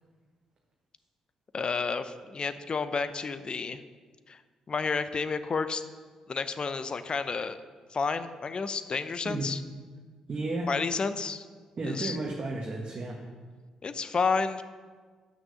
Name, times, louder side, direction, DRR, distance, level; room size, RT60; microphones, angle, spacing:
voice 1, 1.5-3.8 4.3-4.4 4.7-5.8 6.3-7.6 7.9-9.6 10.7-11.4 11.9-12.2 13.8-14.6, left 4 dB, 40° left, 11 dB, 0.7 m, -30 dB
voice 2, 10.3-10.7 11.8-13.2, right 2 dB, 45° right, -1 dB, 1.4 m, -33 dB
9.0 x 6.2 x 6.8 m, 1.5 s
hypercardioid pair, 45°, 2 cm